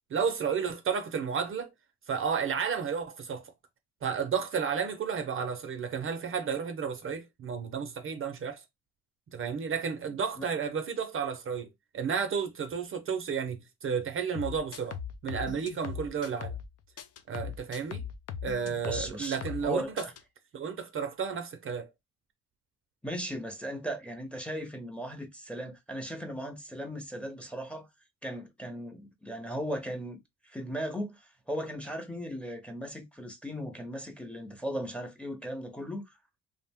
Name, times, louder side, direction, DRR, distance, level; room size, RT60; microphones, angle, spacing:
voice 1, 0.1-1.7 2.1-3.5 4.0-8.6 9.3-15.0 15.2-16.6 17.3-18.1 18.4-20.1 20.5-21.9, right 6 dB, 45° right, 0.5 m, -32 dB
sound 1, 14.3-16.7 17.0-19.7 20.0-20.2, left 8 dB, 55° left, 0.5 m, -39 dB
voice 2, 18.8-20.1 23.0-27.9 28.2-30.2 30.4-36.1, equal, 5° left, 0.6 m, -37 dB
2.4 x 2.1 x 3.4 m
cardioid pair, 90°, 30 cm